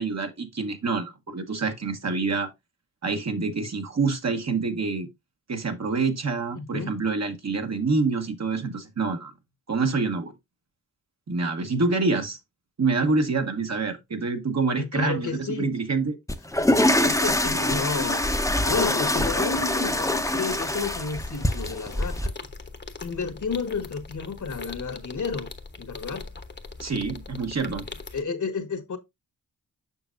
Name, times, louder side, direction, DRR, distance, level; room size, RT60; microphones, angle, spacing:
voice 1, 0.0-2.5 3.0-5.1 5.5-9.3 9.7-10.3 11.3-12.4 12.8-15.3 15.6-16.2 26.8-27.9, right 4 dB, 50° right, 1.3 m, -26 dB
voice 2, 6.5-7.0 14.8-15.7 17.0-22.3 23.0-25.5 25.8-26.3 28.1-29.0, left 5 dB, 60° left, 1.5 m, -31 dB
sound 1, 16.3-22.3, left 1 dB, 10° left, 0.8 m, -24 dB
sound 2, 16.5-28.2, left 3 dB, 30° left, 1.1 m, -41 dB
6.9 x 6.1 x 2.6 m
cardioid pair, 55°, 34 cm